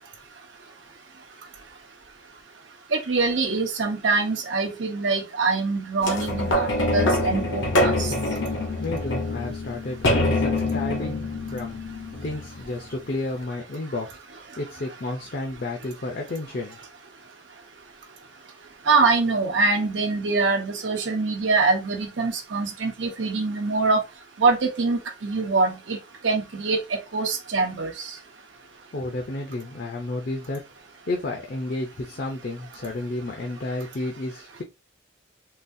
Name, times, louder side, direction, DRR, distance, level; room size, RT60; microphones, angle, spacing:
voice 1, 2.9-8.1 18.9-24.0 24.4-26.0 26.2-28.1, right 3 dB, 70° right, 0.9 m, -24 dB
sound 1, 6.0-12.8 13.4-13.5, left 1 dB, 75° left, 0.9 m, -25 dB
voice 2, 8.8-16.8 28.9-30.6 31.1-34.6, left 2 dB, 50° left, 0.6 m, -32 dB
3.9 x 2.4 x 2.6 m
head